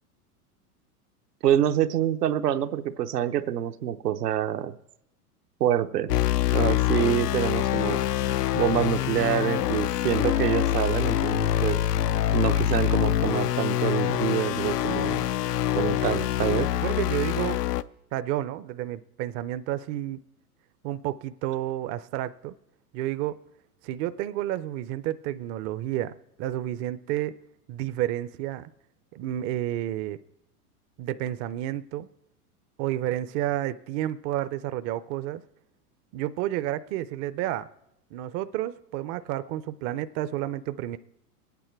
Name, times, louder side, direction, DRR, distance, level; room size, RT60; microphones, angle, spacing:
voice 1, 1.4-4.7 5.6-6.1 6.5-8.0 8.5-11.8 12.3-15.3 15.8-16.7, right 10 dB, 85° right, 8 dB, 0.8 m, -26 dB
sound 1, 6.1-17.8, left 12 dB, 90° left, 0.6 m, -25 dB
voice 2, 16.7-17.6 18.1-20.2 20.8-22.6 22.9-23.4 23.8-26.1 26.4-27.3 27.7-28.7 29.1-30.2 31.0-32.1 32.8-35.4 36.1-37.7 38.1-41.0, right 13 dB, 30° right, 14 dB, 0.4 m, -30 dB
22.5 x 9.1 x 4.5 m, 0.83 s
hypercardioid pair, 105°, 46 cm